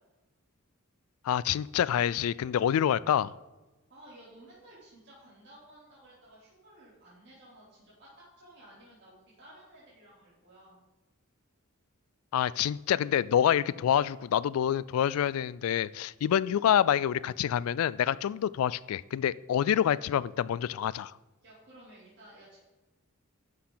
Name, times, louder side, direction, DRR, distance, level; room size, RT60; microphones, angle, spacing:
voice 1, 1.2-3.3 12.3-21.1, left 9 dB, 85° left, 20 dB, 0.3 m, -27 dB
voice 2, 3.9-10.8 21.4-22.6, right 1 dB, 55° right, -9 dB, 3.2 m, -55 dB
11.5 x 6.6 x 3.9 m, 1.1 s
head